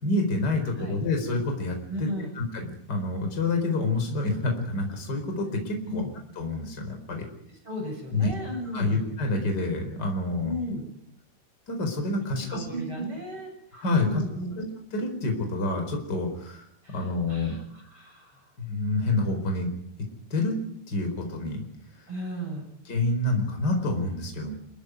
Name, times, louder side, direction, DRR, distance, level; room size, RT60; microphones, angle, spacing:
voice 1, 0.0-2.1 2.3-6.0 6.4-7.2 8.1-8.3 8.7-10.5 11.7-13.0 13.7-14.2 14.6-14.7 14.9-16.6 16.9-17.5 18.6-19.7 20.3-20.6 20.9-21.6 22.9-24.5, left 2 dB, 25° left, 4 dB, 4.9 m, -28 dB
voice 2, 1.9-2.3 5.9-6.1 7.6-9.0 10.4-10.8 12.4-14.5 16.8-18.5 22.1-22.7, equal, 30° right, 1 dB, 7.9 m, -35 dB
27.0 x 15.0 x 9.3 m, 0.76 s
omnidirectional pair, 4.5 m